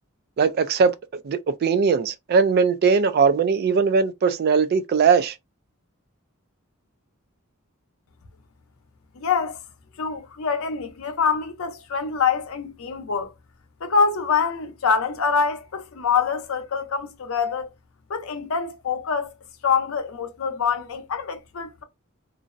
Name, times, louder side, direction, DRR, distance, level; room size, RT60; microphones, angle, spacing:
voice 1, 0.4-0.9 1.2-5.3, right 5 dB, 50° right, 0.3 m, -20 dB
voice 2, 9.1-9.6 10.0-13.3 13.8-17.7 18.1-19.3 19.6-21.8, left 5 dB, 70° left, 0.6 m, -25 dB
2.5 x 2.0 x 2.4 m
head